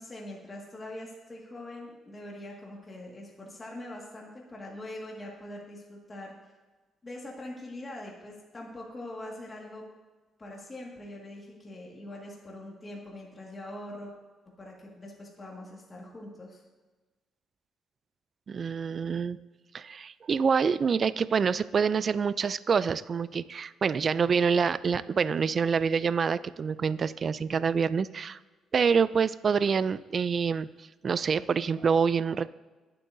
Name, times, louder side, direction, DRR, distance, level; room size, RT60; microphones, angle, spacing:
voice 1, 0.0-6.3 7.0-9.8 10.4-14.1 14.6-16.6, left 1 dB, 25° left, -2 dB, 1.9 m, -43 dB
voice 2, 18.5-19.4 19.7-28.4 28.7-32.5, right 6 dB, 45° right, 16 dB, 0.3 m, -26 dB
19.5 x 7.6 x 2.7 m, 1.3 s
cardioid pair, 90°, 0 cm